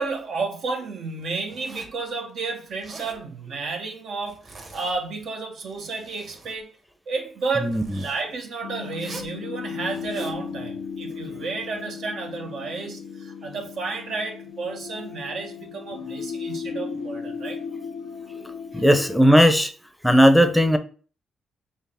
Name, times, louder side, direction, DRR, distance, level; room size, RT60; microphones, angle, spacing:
voice 1, 0.0-6.7 7.1-17.6 18.7-18.8, right 4 dB, 65° right, 0.9 m, -32 dB
Zipper (clothing), 1.5-2.0 2.7-3.2 4.2-5.0 5.6-6.6 7.6-8.2 8.9-9.4 9.9-10.4, right 2 dB, 40° right, 1.5 m, -43 dB
voice 2, 7.6-8.0 18.3-19.7 20.0-20.8, equal, ahead, 0.6 m, -17 dB
sound 1, 8.6-19.2, left 6 dB, 85° left, 0.7 m, -36 dB
4.6 x 3.2 x 3.5 m
cardioid pair, 90°, 0 cm